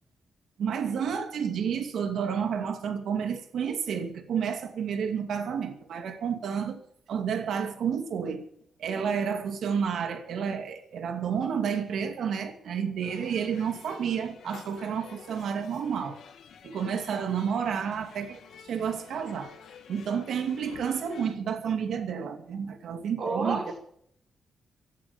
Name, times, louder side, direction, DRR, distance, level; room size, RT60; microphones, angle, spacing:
voice 1, 0.6-6.8 7.1-8.4 8.8-16.2 16.6-19.5 19.9-23.6, right 7 dB, 75° right, 2.5 m, -30 dB
sound 1, 13.0-21.4, left 7 dB, 80° left, 2.2 m, -50 dB
voice 2, 23.2-23.8, right 3 dB, 55° right, 4.9 m, -30 dB
16.5 x 11.5 x 7.1 m
wide cardioid pair, 160°, 0 cm